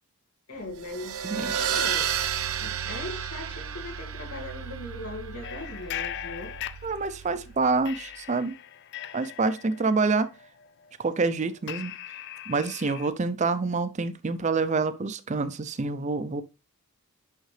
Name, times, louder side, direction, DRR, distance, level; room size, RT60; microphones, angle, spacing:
voice 1, 0.5-2.1 2.6-6.5, left 2 dB, 90° left, 2.0 m, -39 dB
sound 1, 0.7-7.8, right 8 dB, 75° right, 0.8 m, -32 dB
voice 2, 1.2-1.6 6.8-8.6 9.1-10.3 11.0-11.9 12.5-16.4, right 4 dB, 30° right, 0.4 m, -27 dB
sound 2, 5.4-7.4 7.8-13.1, left 11 dB, 50° left, 0.4 m, -40 dB
6.4 x 5.7 x 3.2 m
head